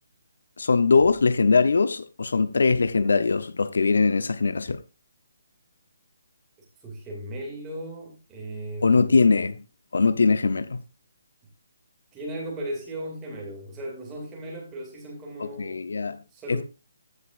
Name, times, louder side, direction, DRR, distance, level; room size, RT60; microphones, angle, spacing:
voice 1, 0.6-4.8 8.8-9.6 9.9-10.8 15.4-16.2 16.5-16.6, left 4 dB, 70° left, 0.7 m, -21 dB
voice 2, 6.8-9.3 12.1-15.8 16.3-16.6, right 1 dB, 10° right, 2.2 m, -36 dB
15.0 x 6.6 x 2.4 m
hypercardioid pair, 180°, 0 cm